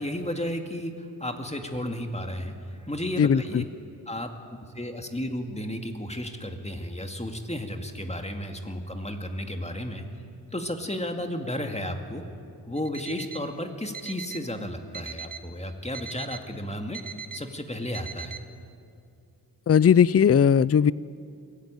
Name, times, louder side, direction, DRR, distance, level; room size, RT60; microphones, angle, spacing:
voice 1, 0.0-3.6 4.1-4.3 4.7-10.0 10.5-12.3 12.7-17.0 17.3-18.4, left 1 dB, 15° left, 5 dB, 2.2 m, -33 dB
voice 2, 3.2-3.6 19.7-20.9, left 7 dB, 40° left, 21 dB, 0.4 m, -18 dB
Alarm, 12.8-13.5 13.9-14.5 14.9-15.5 15.9-16.5 16.9-17.4 17.9-18.4, right 7 dB, 50° right, 1.3 m, -40 dB
22.5 x 16.5 x 9.1 m, 2.4 s
wide cardioid pair, 55°, 40 cm